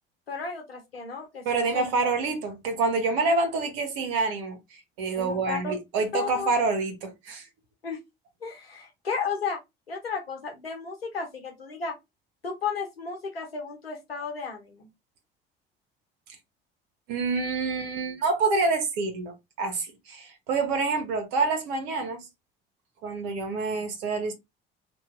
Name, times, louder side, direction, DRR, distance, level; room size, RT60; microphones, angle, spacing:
voice 1, 0.3-1.9 5.2-5.7 6.1-6.5 7.8-8.0 8.4-9.6 9.9-12.0 12.4-14.9, left 5 dB, 85° left, 1.0 m, -33 dB
voice 2, 1.4-7.5 17.1-22.3 23.0-24.3, right 3 dB, 65° right, 1.2 m, -27 dB
3.0 x 2.7 x 3.7 m
figure-of-eight pair, 55°, 29 cm